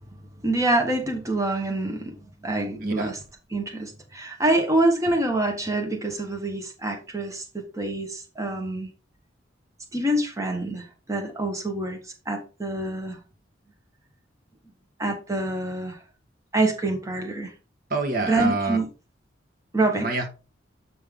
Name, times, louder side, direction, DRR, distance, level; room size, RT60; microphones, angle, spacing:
voice 1, 0.4-2.2 2.4-3.2 3.5-8.9 9.9-12.0 12.2-13.2 15.0-16.0 16.5-17.5 18.2-18.9 19.7-20.2, right 2 dB, 15° right, 1.3 m, -26 dB
voice 2, 2.8-3.1 17.9-18.8 20.0-20.3, right 3 dB, 50° right, 1.4 m, -26 dB
8.1 x 5.5 x 3.7 m
head